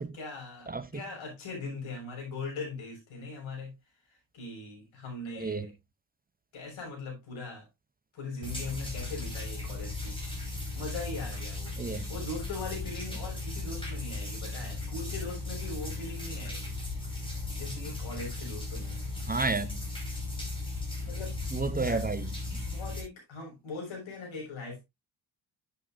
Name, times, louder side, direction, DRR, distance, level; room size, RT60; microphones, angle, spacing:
voice 1, 0.0-3.7 4.3-5.7 6.5-7.6 8.1-10.2 10.7-16.7 17.1-17.2 17.5-19.1 21.0-21.4 21.9-22.0 22.7-24.8, left 3 dB, 90° left, 6.3 m, -40 dB
sound 1, 8.4-23.0, left 2 dB, 10° left, 5.1 m, -36 dB
voice 2, 11.8-12.1 19.3-19.8 21.5-22.6, right 4 dB, 20° right, 0.6 m, -31 dB
10.5 x 8.2 x 2.6 m
cardioid pair, 115°, 46 cm